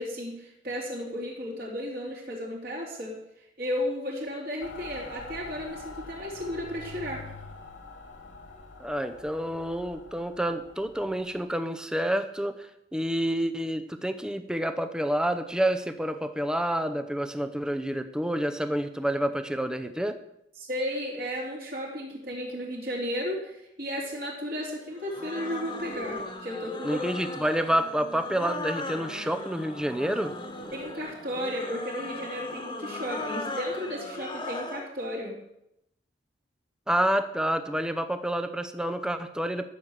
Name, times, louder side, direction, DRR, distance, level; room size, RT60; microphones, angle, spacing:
voice 1, 0.0-3.2 3.6-7.3 20.6-27.0 30.7-35.3, equal, 50° right, -3 dB, 3.9 m, -34 dB
Mechanical fan, 4.6-11.4, left 3 dB, 90° left, 2.3 m, -45 dB
voice 2, 8.8-20.2 26.8-30.4 36.9-39.7, right 1 dB, 5° right, 9 dB, 0.7 m, -28 dB
sound 1, 25.0-34.9, left 2 dB, 25° left, 1.4 m, -38 dB
13.5 x 6.6 x 7.5 m, 0.81 s
head